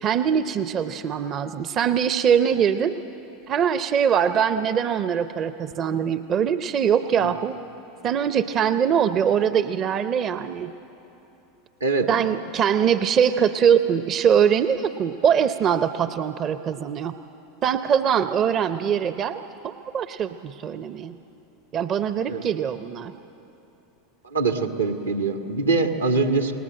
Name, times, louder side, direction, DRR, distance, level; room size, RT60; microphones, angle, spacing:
voice 1, 0.0-3.0 3.5-7.5 8.0-10.7 12.1-17.1 17.6-21.1 21.7-23.1, right 8 dB, 35° right, 12 dB, 0.7 m, -22 dB
voice 2, 24.3-26.5, right 4 dB, 80° right, 5 dB, 1.7 m, -23 dB
29.0 x 19.5 x 7.8 m, 3.0 s
figure-of-eight pair, 80°, 0 cm